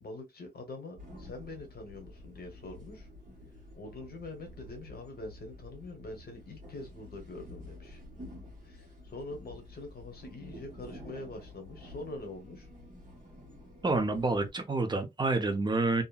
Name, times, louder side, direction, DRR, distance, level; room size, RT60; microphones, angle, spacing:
voice 1, 0.0-3.1 3.8-8.0 8.6-12.7, left 2 dB, 60° left, 0.9 m, -44 dB
sound 1, 1.0-14.5, left 1 dB, 45° right, 1.2 m, -50 dB
voice 2, 13.8-16.0, right 3 dB, 25° right, 0.5 m, -28 dB
2.8 x 2.6 x 2.3 m
wide cardioid pair, 165°, 18 cm